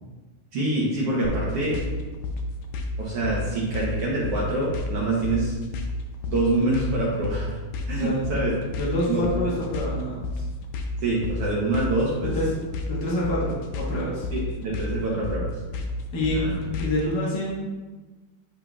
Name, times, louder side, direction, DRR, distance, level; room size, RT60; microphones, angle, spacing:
voice 1, 0.5-1.8 3.0-5.5 6.3-7.5 7.9-8.5 9.1-9.2 11.0-12.3 14.3-15.6 16.3-16.5, right 2 dB, 70° right, -5 dB, 1.4 m, -25 dB
sound 1, 1.2-17.1, left 2 dB, 80° left, 1.5 m, -31 dB
voice 2, 7.9-8.4 8.8-10.4 12.2-14.3 16.1-17.7, left 1 dB, 65° left, -6 dB, 1.0 m, -27 dB
10.5 x 4.0 x 2.3 m, 1.2 s
omnidirectional pair, 3.8 m